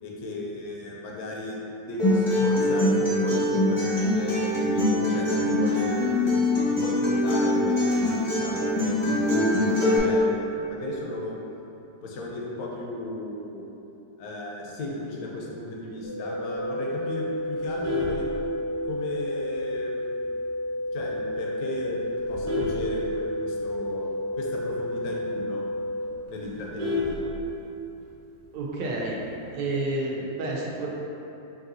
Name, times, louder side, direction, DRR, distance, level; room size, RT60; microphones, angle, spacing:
voice 1, 0.0-4.4 4.7-6.0 6.3-9.5 10.0-11.4 12.0-13.6 14.2-18.3 18.8-20.3 20.9-22.0 22.3-24.1 24.3-25.6 26.3-27.1, left 1 dB, 70° left, -2 dB, 0.9 m, -36 dB
Acoustic guitar, 2.0-10.0, left 1 dB, 30° left, 0.6 m, -23 dB
sound 1, 16.0-26.0, left 1 dB, 90° left, 1.7 m, -31 dB
Vehicle horn car horn honking, 17.5-19.0 19.5-19.7 20.0-20.1 20.6-20.7 21.0-21.3 21.9-23.7 24.1-24.2 24.5-24.6 25.0-25.1 25.4-25.5 25.8-27.8 29.0-29.4, left 2 dB, 50° right, 1.2 m, -31 dB
voice 2, 28.5-29.2 29.5-30.9, right 2 dB, 75° right, -3 dB, 1.3 m, -29 dB
5.4 x 2.6 x 2.6 m, 3.0 s
omnidirectional pair, 2.0 m